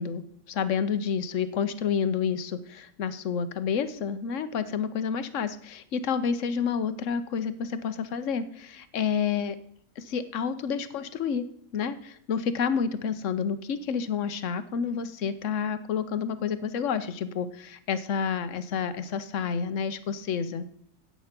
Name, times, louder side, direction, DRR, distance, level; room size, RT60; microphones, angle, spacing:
voice 1, 0.0-9.6 10.0-11.5 11.7-20.7, left 6 dB, 55° left, 12 dB, 1.0 m, -29 dB
11.0 x 8.4 x 5.9 m, 0.66 s
omnidirectional pair, 1.9 m